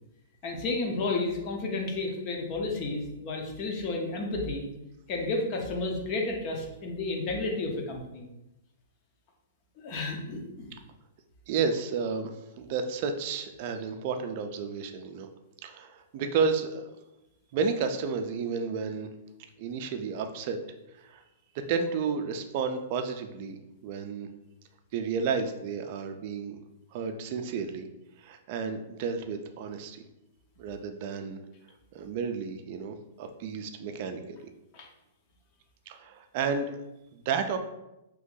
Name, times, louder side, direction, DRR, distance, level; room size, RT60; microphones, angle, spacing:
voice 1, 0.4-4.6 5.1-8.3 9.8-10.7 34.7-34.9, left 3 dB, 35° left, 1 dB, 0.7 m, -32 dB
voice 2, 11.5-15.3 15.6-16.9 17.5-19.1 19.6-20.6 21.0-21.2 21.5-23.6 23.8-24.3 24.9-26.6 26.9-27.9 28.2-30.0 30.6-31.4 31.9-34.4 35.9-36.8 37.1-37.6, right 5 dB, 45° right, 7 dB, 0.4 m, -32 dB
2.9 x 2.6 x 3.7 m, 0.92 s
hypercardioid pair, 150°, 0 cm